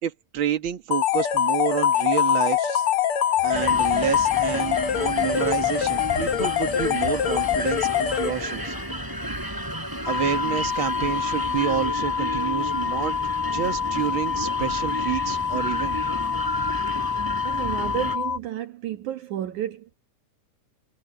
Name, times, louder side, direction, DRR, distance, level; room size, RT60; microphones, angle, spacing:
voice 1, 0.0-2.9 3.4-8.8 10.1-13.2 13.5-16.0, right 9 dB, 45° right, 2.2 m, -29 dB
sound 1, 0.9-8.7, left 10 dB, 60° left, 1.6 m, -23 dB
sound 2, 3.5-18.2, equal, 5° right, 5.5 m, -33 dB
sound 3, 10.0-18.4, left 6 dB, 75° left, 0.7 m, -27 dB
voice 2, 17.4-19.9, right 11 dB, 75° right, 2.9 m, -31 dB
omnidirectional pair, 3.5 m